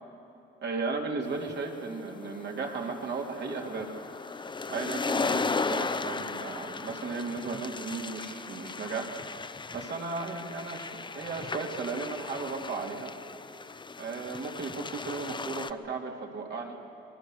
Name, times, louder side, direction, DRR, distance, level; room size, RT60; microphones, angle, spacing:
voice 1, 0.6-3.9 4.7-9.1 9.7-13.1 14.0-16.8, right 4 dB, 60° right, 1 dB, 3.2 m, -35 dB
sound 1, 1.5-15.7, left 4 dB, 25° left, 0.7 m, -36 dB
25.5 x 21.0 x 6.5 m, 2.9 s
cardioid pair, 90°, 20 cm